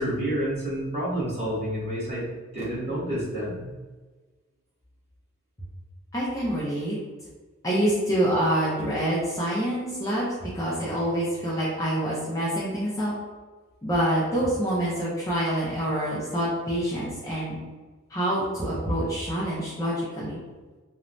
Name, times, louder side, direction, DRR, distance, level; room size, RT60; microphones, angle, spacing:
voice 1, 0.0-2.3 2.5-3.7, equal, 30° right, -8 dB, 1.1 m, -29 dB
voice 2, 6.1-7.0 7.6-10.3 10.5-13.1 13.8-17.6 18.1-20.4, right 1 dB, 15° left, -7 dB, 0.5 m, -26 dB
3.0 x 2.1 x 2.5 m, 1.3 s
head